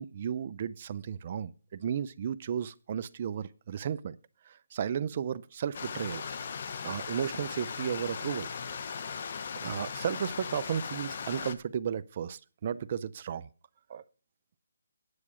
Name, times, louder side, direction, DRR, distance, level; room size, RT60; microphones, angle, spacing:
voice 1, 0.0-4.2 4.5-6.2 6.8-8.5 9.6-13.5 13.9-14.0, right 8 dB, 35° right, 0.6 m, -34 dB
Stream, 5.7-11.5, left 6 dB, 45° left, 0.9 m, -38 dB
9.7 x 8.4 x 5.0 m
hypercardioid pair, 160°, 0 cm